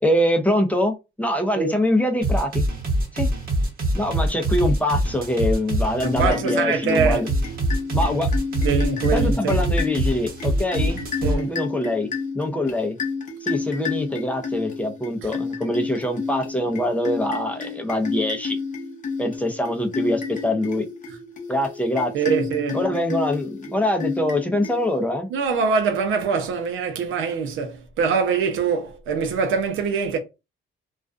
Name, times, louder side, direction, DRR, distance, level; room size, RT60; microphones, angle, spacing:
voice 1, 0.0-2.6 3.1-3.3 3.9-7.3 7.9-8.3 9.1-12.1 12.3-13.0 13.4-18.6 19.2-20.9 21.5-22.1 22.7-25.3, left 1 dB, 5° left, 0.5 m, -24 dB
sound 1, 2.2-6.3 6.9-11.4, right 1 dB, 45° right, 1.1 m, -23 dB
sound 2, 6.0-25.2, left 5 dB, 40° left, 0.7 m, -31 dB
voice 2, 6.0-7.2 8.6-9.6 11.2-11.5 15.2-15.3 22.1-22.8 25.3-30.2, right 5 dB, 80° right, 0.7 m, -23 dB
2.4 x 2.2 x 2.4 m
cardioid pair, 90°, 20 cm